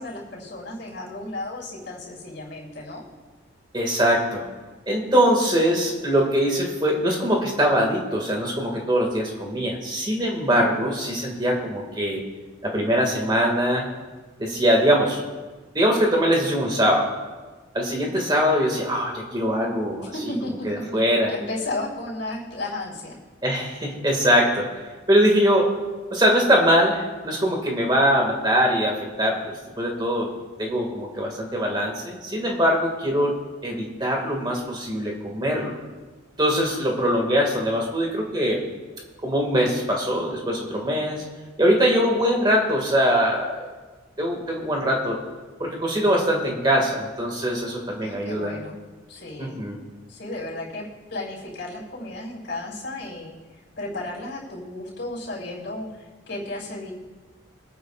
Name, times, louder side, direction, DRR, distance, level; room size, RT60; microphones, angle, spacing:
voice 1, 0.0-3.0 20.1-21.0 21.3-23.1 48.0-48.8 49.1-49.7 50.0-53.3 53.8-56.9, left 2 dB, 70° left, -4 dB, 4.5 m, -34 dB
voice 2, 3.7-4.4 4.9-12.2 12.6-13.9 14.4-15.2 15.7-17.1 17.7-20.1 20.6-21.3 23.4-24.7 25.1-25.7 26.1-29.4 29.8-30.3 30.6-33.3 33.6-35.8 36.4-38.6 39.2-41.2 41.6-43.6 44.2-45.2 45.6-48.6 49.4-49.8, equal, 20° right, 0 dB, 1.9 m, -22 dB
24.5 x 9.5 x 2.4 m, 1.3 s
head